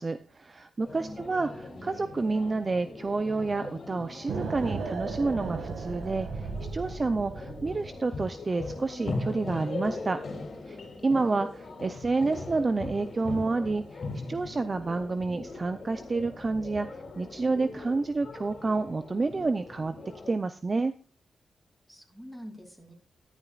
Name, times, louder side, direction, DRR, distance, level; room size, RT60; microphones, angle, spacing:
voice 1, 0.0-1.5 1.8-10.2 10.7-11.5 11.8-14.0 14.3-16.9 17.2-19.9 20.3-20.9, right 3 dB, 40° right, 11 dB, 0.6 m, -29 dB
sound 1, 0.8-20.3, left 3 dB, 55° left, 2.9 m, -40 dB
voice 2, 0.9-1.2 11.3-11.8 21.9-22.9, equal, 10° right, 2 dB, 3.0 m, -46 dB
sound 2, 4.3-8.0, right 4 dB, 80° right, 1.7 m, -35 dB
13.0 x 11.0 x 2.4 m, 0.37 s
cardioid pair, 65°, 0 cm